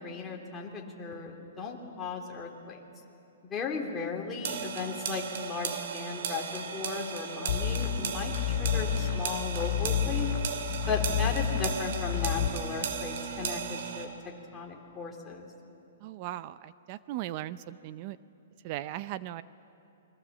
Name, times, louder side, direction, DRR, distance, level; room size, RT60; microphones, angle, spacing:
voice 1, 0.0-2.8 3.4-10.3 10.9-15.5, left 4 dB, 15° left, -1 dB, 3.0 m, -36 dB
sound 1, 4.4-14.1, right 7 dB, 60° right, 2.5 m, -36 dB
sound 2, 7.5-12.5, left 9 dB, 55° left, 3.5 m, -30 dB
voice 2, 16.0-18.2 18.6-19.4, right 14 dB, 35° right, 15 dB, 0.6 m, -38 dB
29.0 x 22.5 x 7.3 m, 2.8 s
hypercardioid pair, 155°, 0 cm